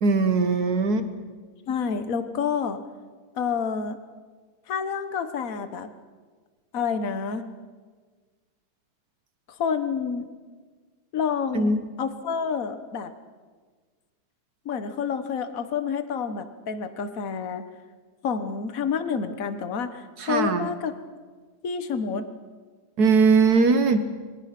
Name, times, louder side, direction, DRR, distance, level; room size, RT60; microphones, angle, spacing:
voice 1, 0.0-1.1 11.5-11.8 20.2-20.7 23.0-24.0, right 4 dB, 60° right, 9 dB, 1.0 m, -20 dB
voice 2, 1.7-2.8 3.3-4.0 4.7-5.9 6.7-7.5 9.6-10.3 11.1-13.1 14.6-17.7 18.2-20.9 21.6-22.3, left 6 dB, 70° left, 10 dB, 0.8 m, -28 dB
27.5 x 22.0 x 6.0 m, 1.5 s
omnidirectional pair, 3.3 m